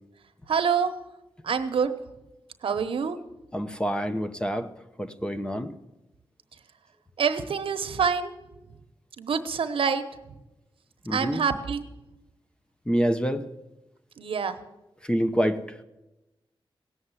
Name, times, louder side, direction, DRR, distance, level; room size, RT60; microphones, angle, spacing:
voice 1, 0.5-0.9 1.4-1.9 2.6-3.2 7.2-8.3 9.2-10.0 11.1-11.8 14.2-14.6, right 6 dB, 80° right, 10 dB, 1.1 m, -26 dB
voice 2, 3.5-4.7 5.0-5.7 11.1-11.4 12.9-13.5 15.1-15.6, equal, 10° left, 8 dB, 0.9 m, -26 dB
17.5 x 7.3 x 9.8 m, 0.98 s
wide cardioid pair, 130°, 9 cm